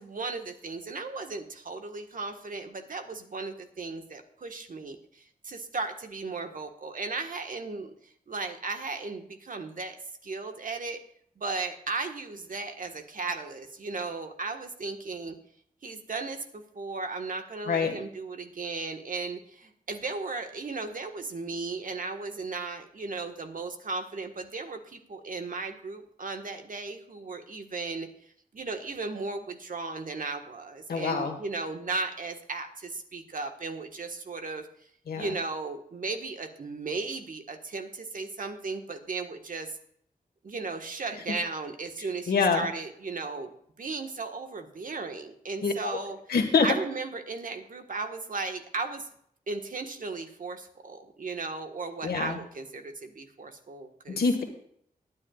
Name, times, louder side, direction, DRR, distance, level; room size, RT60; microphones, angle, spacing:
voice 1, 0.0-7.9 8.3-10.0 10.2-11.0 11.4-15.3 15.8-28.1 28.5-34.7 35.1-39.8 40.4-43.5 43.8-46.2 46.6-49.1 49.5-54.2, right 3 dB, 60° right, 5 dB, 1.5 m, -36 dB
voice 2, 30.9-31.3 35.1-35.3 42.3-42.7 45.6-45.9 46.3-46.7 52.0-52.4 54.1-54.4, left 4 dB, 85° left, 3 dB, 1.7 m, -25 dB
20.5 x 9.8 x 2.4 m, 0.66 s
cardioid pair, 60°, 15 cm